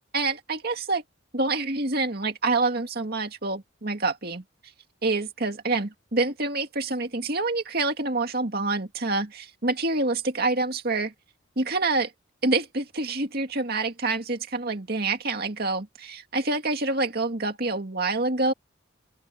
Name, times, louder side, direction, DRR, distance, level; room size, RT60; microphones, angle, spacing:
voice 1, 0.1-1.0 1.3-4.4 5.0-11.1 11.6-12.1 12.4-18.5, right 3 dB, 50° right, 2.3 m, -27 dB
open air
head